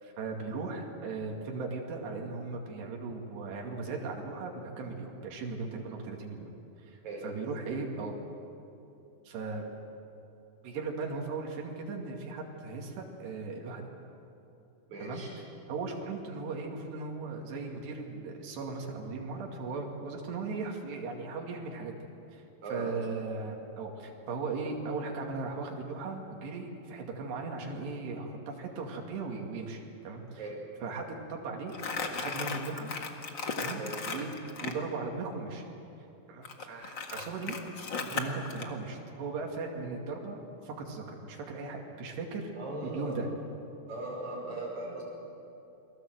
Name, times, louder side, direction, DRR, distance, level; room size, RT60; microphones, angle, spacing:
voice 1, 0.0-6.5 6.8-7.0 7.2-8.1 9.3-9.7 10.6-13.8 15.0-15.2 15.7-22.0 22.3-22.4 22.7-30.5 30.8-31.7 32.1-32.9 33.6-34.3 34.6-35.6 36.3-37.6 38.0-42.5 42.8-43.3, right 4 dB, 85° right, 0 dB, 4.5 m, -37 dB
voice 2, 14.9-15.3 22.6-22.9 30.4-30.7 33.8-34.0 42.6-43.2 43.9-45.0, right 2 dB, 45° right, -3 dB, 6.8 m, -38 dB
Crumpling crinkling, 31.7-34.8 36.4-38.7, left 4 dB, 50° left, 1.4 m, -36 dB
29.0 x 21.5 x 7.9 m, 2.9 s
omnidirectional pair, 4.7 m